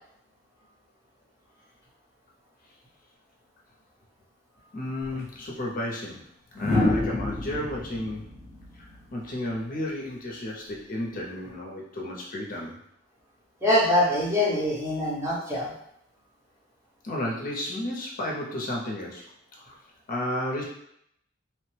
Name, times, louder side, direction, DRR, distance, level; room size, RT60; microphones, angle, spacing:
voice 1, 4.7-6.3 6.5-8.3 8.7-8.9 9.1-12.8 17.0-19.2 19.6-19.8 20.1-20.6, left 1 dB, 45° left, -2 dB, 0.5 m, -32 dB
sound 1, 5.0-5.2 6.6-9.6 11.2-11.5, left 2 dB, 20° left, 0.9 m, -28 dB
voice 2, 13.6-15.7, left 1 dB, 15° right, -7 dB, 0.9 m, -24 dB
3.0 x 2.1 x 3.2 m, 0.73 s
head